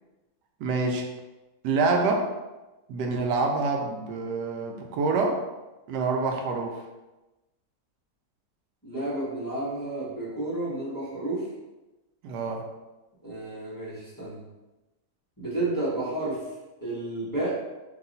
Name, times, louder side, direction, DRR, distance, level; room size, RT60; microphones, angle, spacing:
voice 1, 0.6-1.1 1.6-2.3 2.9-5.4 5.9-6.8 12.2-12.6, right 3 dB, 85° right, 2 dB, 1.2 m, -26 dB
voice 2, 8.8-11.5 13.2-14.4 15.4-16.4 16.8-17.6, right 2 dB, 15° left, -11 dB, 1.2 m, -31 dB
3.1 x 2.9 x 3.9 m, 1.1 s
omnidirectional pair, 1.7 m